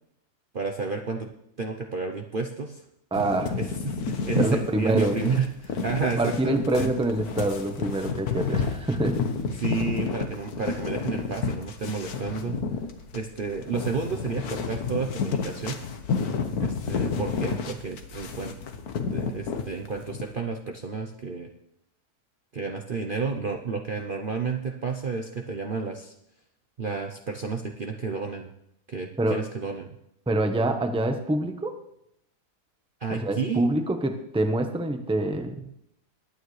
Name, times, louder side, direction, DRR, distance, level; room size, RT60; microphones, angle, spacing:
voice 1, 0.5-1.3 1.6-2.8 3.5-6.9 9.6-12.6 13.1-15.8 16.6-18.6 19.1-21.5 22.5-26.1 26.8-28.5 28.9-30.0 33.0-33.6, right 5 dB, 45° right, 3 dB, 0.8 m, -31 dB
sound 1, 3.1-20.2, left 5 dB, 75° left, 1.6 m, -31 dB
voice 2, 3.1-3.5 4.4-5.2 6.2-9.2 29.2-29.4 30.3-31.7 33.1-35.5, right 2 dB, 5° right, 6 dB, 0.8 m, -26 dB
21.0 x 9.3 x 3.2 m, 0.78 s
omnidirectional pair, 1.7 m